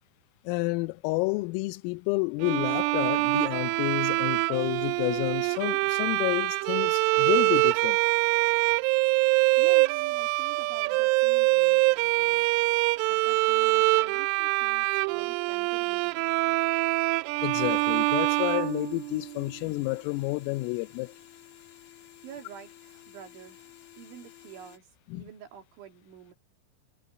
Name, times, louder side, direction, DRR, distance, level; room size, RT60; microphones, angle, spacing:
voice 1, 0.4-8.0 17.4-21.1 25.1-25.2, left 23 dB, 85° left, 3.3 m, -30 dB
Bowed string instrument, 2.4-19.4, right 24 dB, 85° right, 2.9 m, -25 dB
voice 2, 9.6-12.5 13.1-16.7 22.2-23.7 24.0-26.3, right 9 dB, 65° right, 5.2 m, -48 dB
sound 1, 17.5-24.8, left 11 dB, 60° left, 2.6 m, -52 dB
omnidirectional pair, 5.9 m